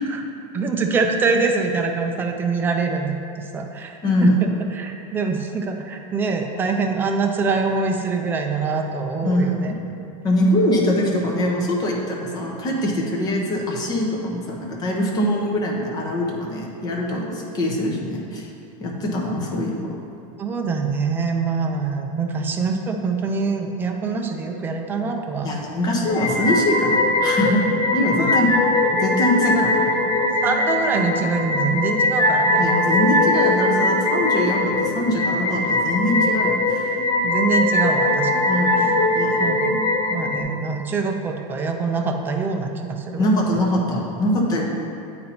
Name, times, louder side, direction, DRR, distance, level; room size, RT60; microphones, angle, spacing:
voice 1, 0.5-3.2 3.5-9.7 20.4-25.5 28.2-28.4 29.4-29.6 30.4-32.7 37.2-38.5 39.4-39.8 40.1-43.2, right 4 dB, 10° right, 3 dB, 0.3 m, -24 dB
voice 2, 4.0-4.5 9.2-9.7 10.2-18.5 18.8-19.8 25.4-28.5 29.0-29.8 32.6-37.0 38.5-39.4 43.2-44.6, left 1 dB, 20° left, -1 dB, 0.8 m, -23 dB
sound 1, 26.1-40.4, left 2 dB, 80° left, 1.0 m, -21 dB
8.5 x 4.1 x 4.2 m, 2.6 s
supercardioid pair, 170°, 18 cm